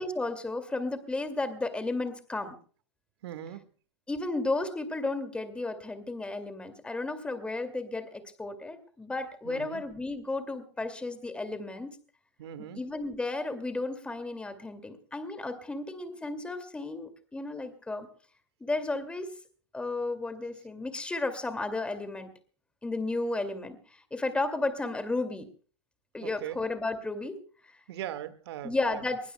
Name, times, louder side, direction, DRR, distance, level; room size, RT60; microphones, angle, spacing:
voice 1, 0.0-2.5 4.1-12.0 12.8-18.1 18.6-19.3 19.7-22.3 22.8-25.5 26.1-27.8 28.6-29.2, left 2 dB, 5° left, 9 dB, 2.3 m, -33 dB
voice 2, 3.2-3.6 9.4-9.8 12.4-12.8 26.2-26.6 27.9-29.0, right 11 dB, 60° right, 12 dB, 1.8 m, -40 dB
23.0 x 21.5 x 2.2 m, 0.42 s
hypercardioid pair, 110°, 15 cm